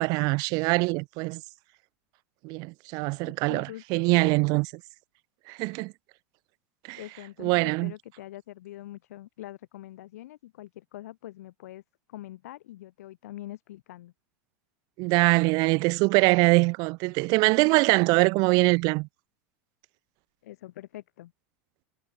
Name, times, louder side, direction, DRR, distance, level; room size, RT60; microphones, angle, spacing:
voice 1, 0.0-1.4 2.4-4.7 5.5-5.9 6.9-7.0 7.4-7.9 15.0-19.1, right 27 dB, 55° right, 0.7 m, -23 dB
voice 2, 3.2-4.5 7.0-11.8 12.1-14.1 20.4-21.3, left 15 dB, 75° left, 4.8 m, -44 dB
hypercardioid pair, 110°, 8 cm